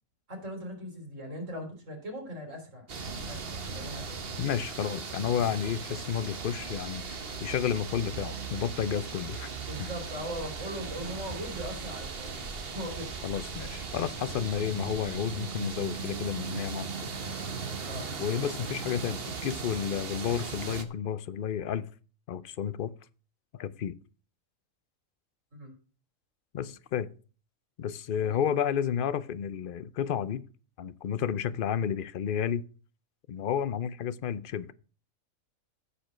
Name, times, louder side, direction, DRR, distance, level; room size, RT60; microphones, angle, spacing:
voice 1, 0.3-4.5 9.7-12.5 12.7-13.1 17.9-18.1 25.5-25.7 28.2-28.4, equal, 65° right, 3.8 m, -40 dB
sound 1, 2.9-20.8, right 5 dB, 50° right, 1.3 m, -38 dB
voice 2, 4.4-9.5 9.8-9.9 13.2-17.1 18.2-21.8 22.3-22.9 23.5-24.0 26.5-27.1 27.8-30.4 30.8-32.6 33.3-34.7, left 8 dB, 55° left, 0.6 m, -31 dB
13.0 x 5.2 x 6.1 m
omnidirectional pair, 1.4 m